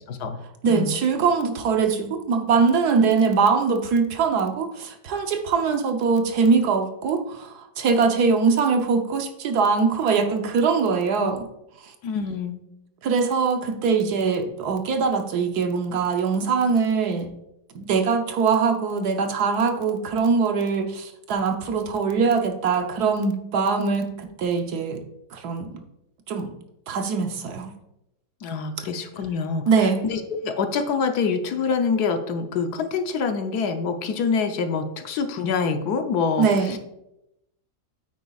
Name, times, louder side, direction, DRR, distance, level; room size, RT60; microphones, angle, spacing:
voice 1, 0.1-0.4 0.7-1.0 12.0-12.6 28.4-36.8, left 5 dB, 75° left, 6 dB, 1.3 m, -26 dB
voice 2, 0.6-11.5 11.8-11.9 13.0-17.3 17.7-25.0 25.3-25.7 26.3-26.5 26.9-27.7 29.7-30.0 36.4-36.8, right 5 dB, 75° right, 5 dB, 1.4 m, -22 dB
9.3 x 8.0 x 2.4 m, 0.84 s
omnidirectional pair, 1.7 m